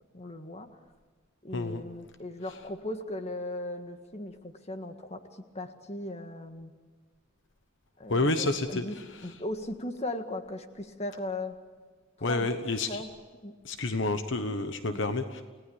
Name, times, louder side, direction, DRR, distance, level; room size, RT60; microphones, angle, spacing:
voice 1, 0.1-0.7 1.4-6.7 8.0-9.0 9.2-11.6 12.2-12.6 12.9-13.1 13.4-13.6 14.8-15.2, left 1 dB, 30° left, 7 dB, 1.7 m, -38 dB
voice 2, 1.5-1.8 8.1-9.3 12.2-13.0 13.6-15.4, left 2 dB, 60° left, 9 dB, 1.1 m, -29 dB
30.0 x 18.0 x 8.8 m, 1.4 s
head